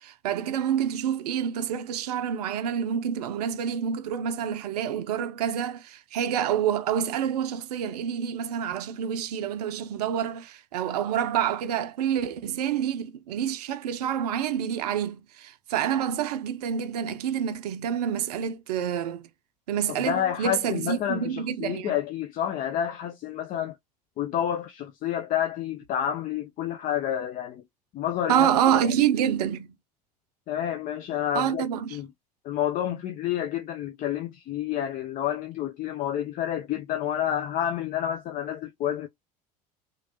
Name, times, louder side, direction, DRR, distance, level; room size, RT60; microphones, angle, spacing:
voice 1, 0.0-19.3 19.7-21.9 28.3-29.8 31.3-32.0, right 9 dB, 75° right, 0.5 m, -27 dB
voice 2, 19.9-23.8 24.2-27.6 27.9-28.8 30.5-32.1 32.4-39.1, left 10 dB, 40° left, 0.5 m, -29 dB
3.0 x 2.5 x 2.8 m
hypercardioid pair, 70°, 21 cm